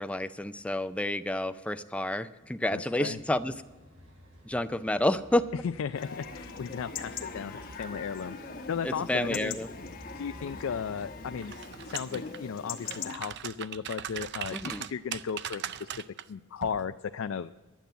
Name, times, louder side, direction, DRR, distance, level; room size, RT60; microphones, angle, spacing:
voice 1, 0.0-3.5 4.4-5.4 8.8-9.7 14.5-14.8, left 1 dB, 5° left, 11 dB, 0.4 m, -29 dB
voice 2, 2.7-3.2 5.8-8.4 8.7-9.6 10.1-11.5 11.8-16.0 16.3-17.5, left 6 dB, 70° left, 10 dB, 0.4 m, -35 dB
sound 1, 3.2-15.4, equal, 75° right, 4.9 m, -54 dB
Chatter / Livestock farm animals working animals / Chirp tweet, 5.9-13.1, left 5 dB, 45° left, 1.0 m, -41 dB
sound 2, 11.4-12.4 12.8-16.2 16.6-16.8, right 10 dB, 55° right, 0.4 m, -39 dB
12.0 x 9.3 x 8.2 m, 1.2 s
head